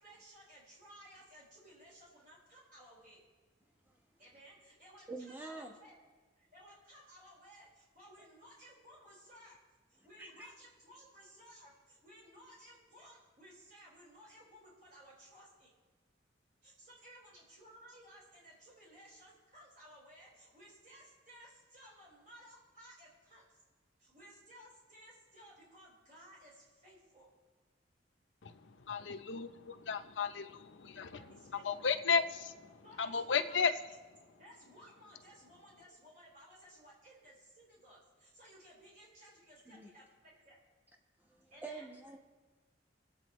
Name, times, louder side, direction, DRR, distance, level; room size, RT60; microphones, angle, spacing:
voice 1, 0.0-3.2 4.2-5.9 6.4-9.6 9.9-15.7 16.6-23.6 24.0-27.3 31.1-31.9 32.8-33.7 34.4-40.6 41.5-41.9, equal, 50° right, -5 dB, 4.5 m, -58 dB
voice 2, 5.1-5.7 10.2-10.5 39.7-39.9 41.6-42.2, right 3 dB, 10° right, 1 dB, 1.2 m, -45 dB
voice 3, 28.9-31.2 31.6-33.7, left 5 dB, 85° left, 9 dB, 0.7 m, -34 dB
24.5 x 8.6 x 3.1 m, 1.3 s
head